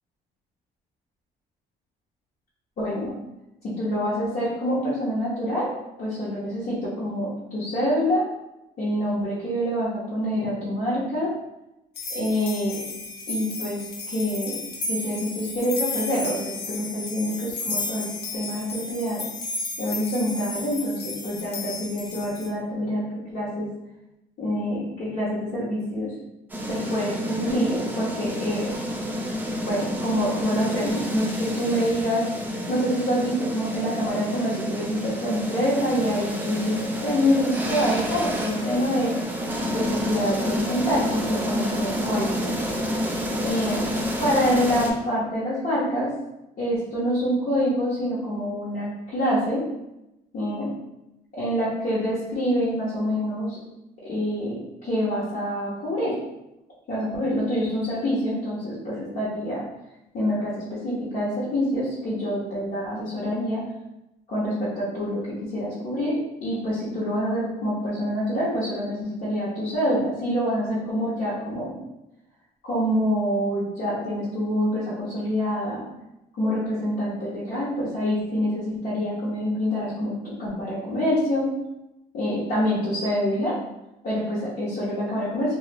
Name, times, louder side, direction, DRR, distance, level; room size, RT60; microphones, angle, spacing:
voice 1, 2.8-3.1 3.8-5.7 6.0-8.2 8.8-11.3 12.1-12.8 13.3-14.6 14.9-18.1 18.3-19.2 19.8-23.0 23.3-23.7 24.4-26.1 26.7-28.7 29.6-32.2 32.7-39.1 39.7-42.5 43.4-43.8 44.2-46.1 46.6-49.6 50.3-50.7 51.3-53.6 54.0-54.6 54.8-56.2 56.9-59.6 60.1-63.6 64.3-71.7 72.6-75.8 76.4-80.1 80.4-81.5 82.1-83.5 84.0-85.6, equal, 50° left, -10 dB, 1.0 m, -26 dB
sound 1, 12.0-22.5, left 3 dB, 70° left, 0.6 m, -33 dB
sound 2, 26.5-44.9, equal, 10° right, 0.5 m, -29 dB
2.5 x 2.3 x 3.0 m, 0.92 s
cardioid pair, 110°, 17 cm